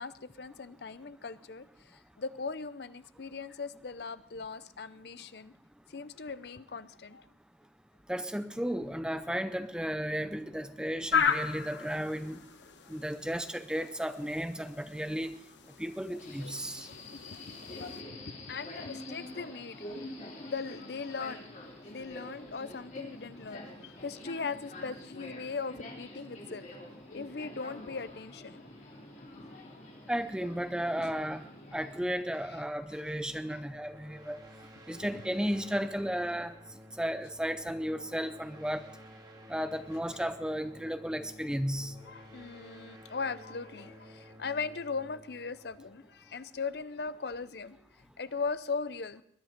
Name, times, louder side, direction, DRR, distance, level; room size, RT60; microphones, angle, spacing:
voice 1, 0.0-5.5 5.9-7.3 16.5-16.6 16.9-20.0 20.4-21.5 21.9-26.7 27.1-28.7 32.9-33.1 33.5-33.6 34.9-35.0 42.0-47.8 48.2-49.2, left 4 dB, 60° left, 14 dB, 0.6 m, -39 dB
voice 2, 8.1-12.4 12.9-15.4 15.8-16.9 30.1-31.4 31.7-34.4 34.9-36.5 37.0-38.9 39.5-42.0, equal, 5° right, 10 dB, 0.5 m, -34 dB
sound 1, 11.1-18.0, left 7 dB, 75° left, 1.1 m, -36 dB
Subway metro underground, 16.2-32.0, left 1 dB, 40° left, 3.1 m, -46 dB
sound 2, 33.3-46.6, equal, 20° right, 2.1 m, -53 dB
21.0 x 10.5 x 5.1 m, 0.70 s
head